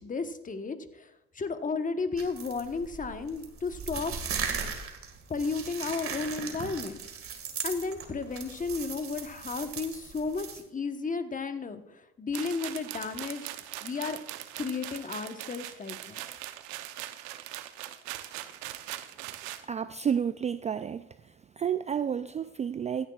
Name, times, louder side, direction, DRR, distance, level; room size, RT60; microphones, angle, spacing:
voice 1, 0.0-4.1 4.5-4.7 5.3-7.0 7.6-14.2 14.6-16.2, left 4 dB, 25° left, 8 dB, 1.1 m, -33 dB
sound 1, 2.2-10.6, right 6 dB, 50° right, 1.9 m, -38 dB
sound 2, 12.3-19.6, right 14 dB, 80° right, 0.8 m, -41 dB
voice 2, 19.7-21.0 21.6-23.1, right 8 dB, 25° right, 13 dB, 0.3 m, -30 dB
15.5 x 10.0 x 2.4 m, 0.91 s
supercardioid pair, 70°, 29 cm